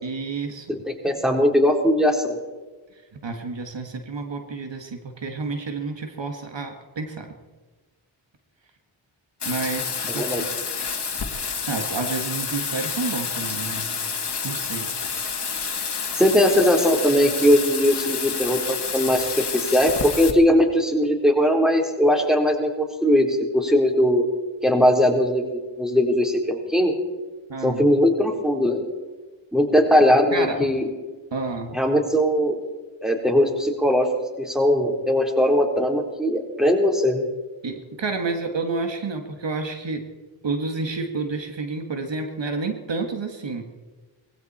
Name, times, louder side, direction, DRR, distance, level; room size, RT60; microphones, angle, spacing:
voice 1, 0.0-0.8 2.9-7.3 9.5-10.5 11.7-14.0 14.4-14.9 27.5-27.8 30.3-30.7 31.3-31.8 37.6-40.1 40.4-43.6, right 3 dB, 60° right, 5 dB, 2.0 m, -30 dB
voice 2, 0.7-2.4 10.1-10.4 16.2-22.7 23.0-24.2 24.6-27.0 27.6-28.8 29.5-30.8 31.7-32.6 33.0-34.1 34.4-37.2, equal, ahead, 2 dB, 4.1 m, -20 dB
Bathtub (filling or washing), 9.4-20.3, left 5 dB, 50° left, 2.1 m, -29 dB
20.0 x 16.5 x 4.4 m, 1.3 s
cardioid pair, 45°, 50 cm